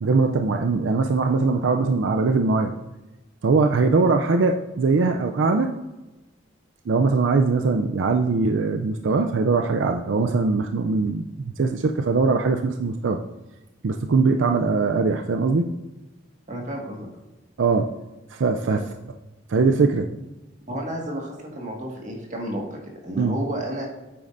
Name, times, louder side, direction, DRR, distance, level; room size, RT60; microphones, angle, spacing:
voice 1, 0.0-2.7 3.4-5.7 6.9-13.2 13.8-15.7 17.6-17.8 18.3-18.8 19.5-20.1 23.2-23.4, right 4 dB, 80° right, 5 dB, 0.5 m, -21 dB
voice 2, 16.5-17.1 18.7-18.8 20.7-23.9, right 1 dB, 40° right, 0 dB, 1.8 m, -31 dB
9.2 x 8.6 x 2.6 m, 1.1 s
head